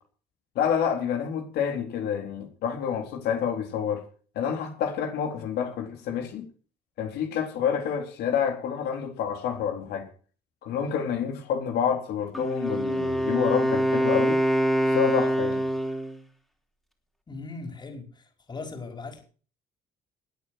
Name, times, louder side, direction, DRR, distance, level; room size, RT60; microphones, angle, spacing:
voice 1, 0.6-4.0 4.4-6.4 7.0-10.1 10.6-14.4 14.9-15.6, left 8 dB, 75° left, 3 dB, 3.9 m, -28 dB
Wind instrument woodwind instrument, 12.3-16.2, right 1 dB, ahead, 3.8 m, -25 dB
voice 2, 17.3-19.2, left 3 dB, 25° left, 4 dB, 5.2 m, -39 dB
20.0 x 8.7 x 6.6 m, 0.41 s
cardioid pair, 110°, 17 cm